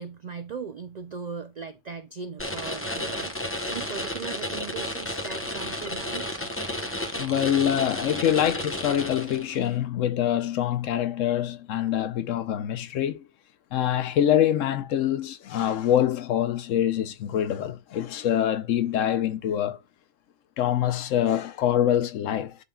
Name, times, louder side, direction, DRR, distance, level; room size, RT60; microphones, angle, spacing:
voice 1, 0.0-6.4, right 6 dB, 80° right, 0.3 m, -39 dB
sound 1, 2.4-9.7, left 1 dB, 10° left, 0.8 m, -32 dB
voice 2, 7.2-13.2 13.7-19.8 20.6-22.6, left 10 dB, 80° left, 1.0 m, -25 dB
11.0 x 3.8 x 2.3 m
omnidirectional pair, 1.3 m